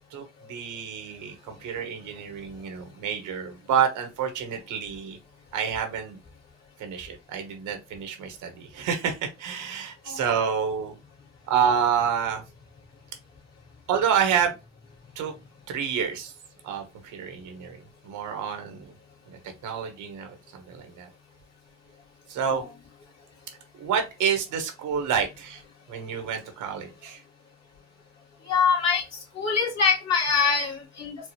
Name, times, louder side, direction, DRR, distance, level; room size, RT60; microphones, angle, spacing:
voice 1, 0.1-5.2 5.5-6.2 6.8-10.9 11.5-12.4 13.9-14.5 15.2-15.3 15.7-16.3 16.6-16.8 17.1-17.8 18.0-18.9 19.3-20.3 20.5-21.1 22.3-22.6 23.8-25.6 25.9-27.2, right 7 dB, 85° right, 6 dB, 1.0 m, -28 dB
voice 2, 28.5-29.0 29.4-31.2, left 5 dB, 60° left, -3 dB, 1.9 m, -24 dB
4.6 x 2.0 x 2.8 m, 0.25 s
cardioid pair, 90°, 30 cm